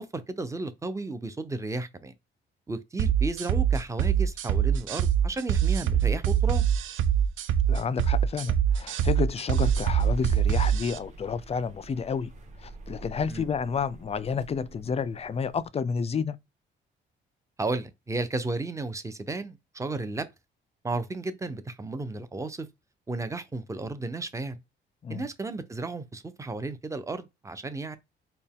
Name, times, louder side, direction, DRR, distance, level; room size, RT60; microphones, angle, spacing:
voice 1, 0.0-2.1 2.7-6.6 13.3-13.4 17.6-20.3 20.8-22.7 23.1-24.6 25.1-28.0, right 3 dB, 15° right, 0.6 m, -33 dB
sound 1, 3.0-11.0, right 9 dB, 75° right, 0.5 m, -24 dB
voice 2, 7.7-12.3 12.6-16.4 25.0-25.3, left 6 dB, 30° left, 0.4 m, -30 dB
sound 2, 9.6-15.7, right 4 dB, 35° right, 1.4 m, -43 dB
4.2 x 2.3 x 3.6 m
cardioid pair, 90°, 20 cm